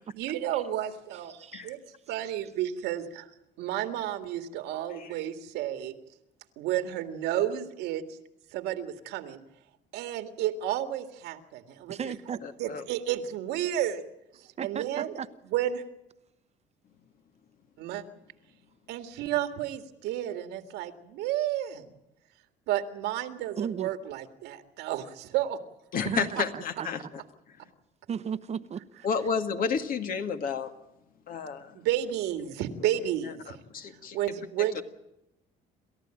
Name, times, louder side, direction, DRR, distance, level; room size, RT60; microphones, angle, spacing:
voice 1, 0.1-1.8 2.1-3.3 3.6-5.9 6.6-8.2 8.5-9.4 9.9-12.0 12.3-14.0 14.3-15.1 15.5-15.8 17.8-18.0 18.9-21.9 22.7-25.6 31.7-33.6 34.1-34.8, right 12 dB, 90° right, 8 dB, 2.0 m, -31 dB
voice 2, 11.9-12.4 14.6-15.3 23.6-23.9 26.0-27.1 28.1-29.1, right 7 dB, 40° right, 13 dB, 1.0 m, -35 dB
voice 3, 25.9-27.0 29.0-30.7 31.3-31.8 33.7-34.2 34.7-34.8, left 6 dB, 55° left, 7 dB, 2.1 m, -30 dB
28.0 x 14.0 x 9.0 m, 0.88 s
cardioid pair, 110°, 17 cm